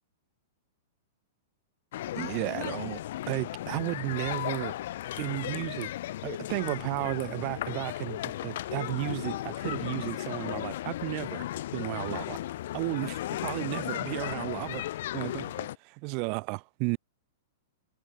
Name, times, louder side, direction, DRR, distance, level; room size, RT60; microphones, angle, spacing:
sound 1, 1.9-15.8, left 13 dB, 65° left, 0.7 m, -35 dB
voice 1, 2.2-4.7 5.2-5.9 6.2-11.4 11.7-12.4 12.7-17.0, right 37 dB, 45° right, 0.3 m, -34 dB
hypercardioid pair, 110°, 0 cm